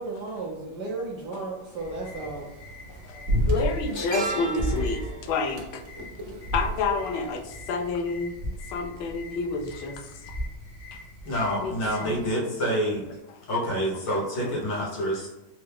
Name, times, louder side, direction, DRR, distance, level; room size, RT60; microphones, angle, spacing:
voice 1, 0.0-3.0, right 3 dB, 65° right, -3 dB, 1.1 m, -35 dB
sound 1, 1.0-1.1 2.3-2.6 2.8-7.1 7.4-7.6, right 2 dB, 90° right, 0.6 m, -36 dB
sound 2, 1.8-12.3, left 1 dB, 35° left, 0.5 m, -45 dB
voice 2, 3.0-5.8 6.5-8.4 8.7-10.2 10.9-11.0 11.3-12.4 13.3-13.4 14.7-14.9, left 4 dB, 80° left, 2 dB, 1.4 m, -30 dB
sound 3, 3.3-3.9 4.6-5.1 6.4-7.2 8.4-8.8 10.3-10.7 13.1-13.2, right 1 dB, 45° right, 0.6 m, -28 dB
voice 3, 11.2-13.1 13.5-15.3, equal, 65° left, -3 dB, 1.7 m, -27 dB
4.5 x 2.1 x 3.4 m, 1.0 s
omnidirectional pair, 2.3 m